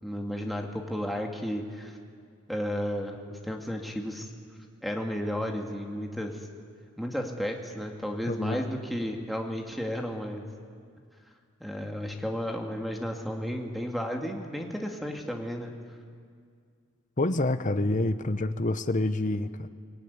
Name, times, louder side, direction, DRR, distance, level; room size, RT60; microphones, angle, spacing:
voice 1, 0.0-2.0 2.5-4.3 4.8-6.4 7.0-10.5 11.6-15.8, equal, ahead, 1 dB, 2.3 m, -33 dB
voice 2, 8.3-8.7 17.2-19.7, left 2 dB, 40° left, 10 dB, 1.0 m, -27 dB
24.0 x 21.0 x 9.7 m, 2.1 s
head